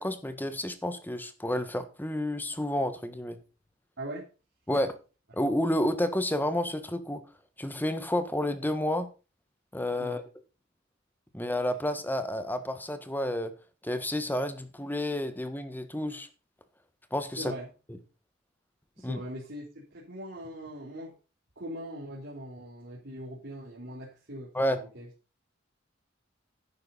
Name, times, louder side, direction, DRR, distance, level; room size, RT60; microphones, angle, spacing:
voice 1, 0.0-3.4 4.7-4.9 5.3-7.2 7.6-9.1 9.7-10.2 11.3-13.5 13.8-16.3 17.1-17.5 19.0-19.2 24.5-24.8, left 1 dB, 10° left, 10 dB, 1.4 m, -30 dB
voice 2, 4.0-4.3 4.7-4.8 10.0-10.2 17.4-17.7 19.0-21.1 21.5-25.1, right 1 dB, 60° right, -5 dB, 3.4 m, -41 dB
11.0 x 9.3 x 4.0 m, 0.33 s
head